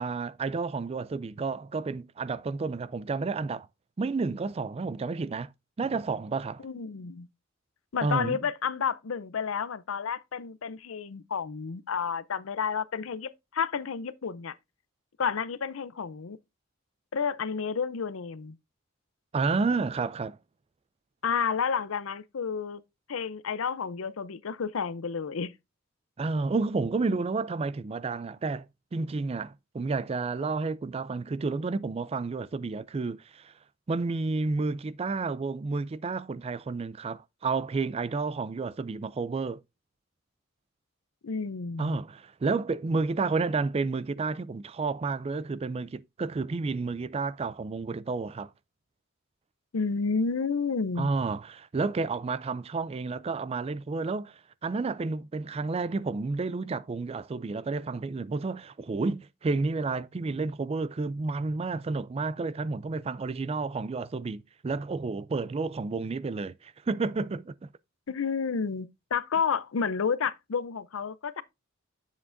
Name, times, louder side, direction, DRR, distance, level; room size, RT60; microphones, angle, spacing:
voice 1, 0.0-3.7 4.0-5.5 5.8-6.6 8.0-8.4 19.3-20.4 26.2-28.7 28.9-33.5 33.9-39.6 41.8-48.5 51.0-67.7, right 4 dB, 30° right, 0.4 m, -31 dB
voice 2, 6.6-7.3 7.9-14.5 15.2-16.4 17.1-18.6 21.2-22.8 23.1-25.5 41.2-42.0 49.7-51.1 68.1-71.4, left 6 dB, 80° left, 0.6 m, -30 dB
8.5 x 7.3 x 2.5 m
head